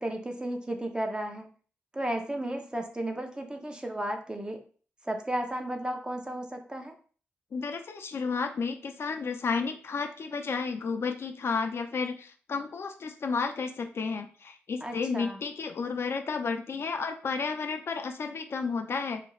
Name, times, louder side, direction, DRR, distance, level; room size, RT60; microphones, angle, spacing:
voice 1, 0.0-1.5 1.9-4.6 5.0-7.0 14.8-15.4, right 1 dB, 20° right, 4 dB, 0.6 m, -34 dB
voice 2, 7.5-19.2, left 5 dB, 60° left, 5 dB, 0.4 m, -32 dB
2.8 x 2.4 x 3.0 m, 0.41 s
cardioid pair, 55°, 5 cm